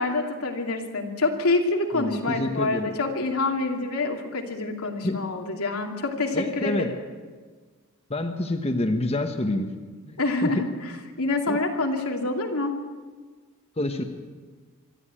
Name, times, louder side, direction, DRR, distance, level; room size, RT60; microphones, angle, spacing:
voice 1, 0.0-6.9 10.2-10.9 11.2-12.7, left 3 dB, 90° left, 2 dB, 2.7 m, -26 dB
voice 2, 1.9-2.9 5.0-5.2 6.3-6.9 8.1-9.7 10.1-10.6 11.5-11.6 13.8-14.0, left 1 dB, 30° left, 5 dB, 1.2 m, -27 dB
24.5 x 12.0 x 9.0 m, 1.5 s
head